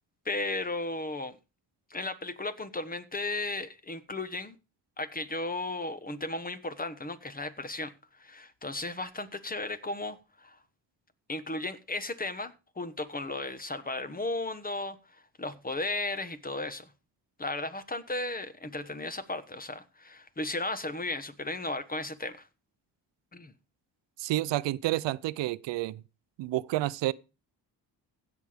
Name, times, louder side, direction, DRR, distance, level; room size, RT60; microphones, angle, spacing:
voice 1, 0.2-1.4 1.9-4.6 5.0-7.9 8.2-10.6 11.3-16.9 17.4-22.5 23.3-23.5, left 2 dB, 20° left, 1.2 m, -35 dB
voice 2, 24.2-26.0 26.4-27.1, right 16 dB, 85° right, 0.6 m, -29 dB
16.0 x 6.1 x 5.0 m
cardioid pair, 95°, 42 cm